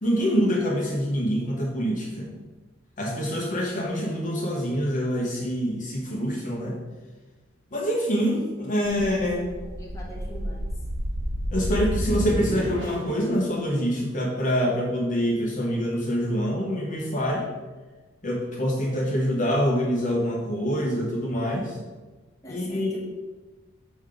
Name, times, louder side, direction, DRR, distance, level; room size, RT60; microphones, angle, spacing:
voice 1, 0.0-2.3 3.0-6.8 7.7-9.5 11.5-17.5 18.2-21.8 22.5-23.0, equal, 40° left, -3 dB, 1.0 m, -25 dB
sound 1, 8.8-13.2, equal, 75° right, 1.4 m, -30 dB
voice 2, 9.8-10.6 22.4-23.0, equal, 15° left, -3 dB, 1.2 m, -43 dB
6.2 x 3.8 x 5.0 m, 1.2 s
head